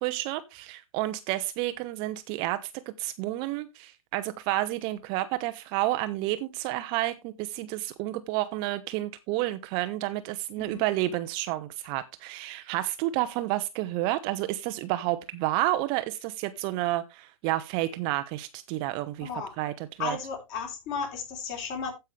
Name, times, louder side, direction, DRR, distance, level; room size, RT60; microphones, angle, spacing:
voice 1, 0.0-19.3 19.6-20.2, right 16 dB, 30° right, 0.6 m, -30 dB
voice 2, 19.2-19.5 20.0-21.9, left 5 dB, 35° left, 3.8 m, -34 dB
15.5 x 5.6 x 3.2 m
figure-of-eight pair, 120°, 18 cm